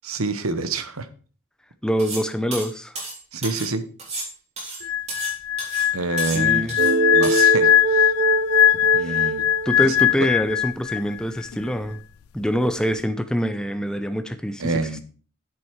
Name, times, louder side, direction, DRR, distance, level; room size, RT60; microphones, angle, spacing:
voice 1, 0.0-1.1 3.3-3.8 5.9-6.8 7.1-8.1 8.9-9.4 9.8-10.0 14.6-15.0, right 3 dB, 85° right, 12 dB, 1.0 m, -27 dB
voice 2, 1.8-3.0 6.3-6.8 9.0-9.3 9.7-12.0 12.3-14.7, equal, 5° left, 9 dB, 0.6 m, -25 dB
sound 1, 2.0-2.3 2.5-3.7 4.0-5.3 5.6-5.9 6.2-6.9 7.2-7.5, right 2 dB, 30° right, 3.6 m, -33 dB
sound 2, 4.8-11.2 11.4-11.7, left 12 dB, 85° left, 0.4 m, -20 dB
sound 3, 6.8-10.5, right 3 dB, 50° right, 0.9 m, -23 dB
8.5 x 7.7 x 4.6 m, 0.40 s
head